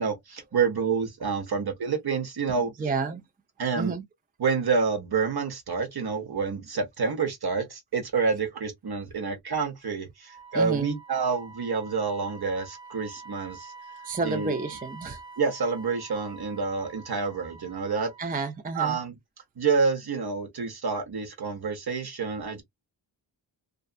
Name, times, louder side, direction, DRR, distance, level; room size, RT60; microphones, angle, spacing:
voice 1, 0.0-2.7 3.6-3.9 4.4-13.7 14.2-14.6 15.4-18.1 18.7-19.2 19.6-22.6, right 5 dB, 55° right, 0.9 m, -28 dB
voice 2, 2.6-3.2 3.8-4.0 10.5-11.0 14.0-15.2 18.2-19.0, right 4 dB, 20° right, 0.4 m, -30 dB
Wind instrument woodwind instrument, 10.2-18.5, right 4 dB, 20° left, 0.6 m, -46 dB
2.5 x 2.4 x 2.3 m
wide cardioid pair, 85°, 47 cm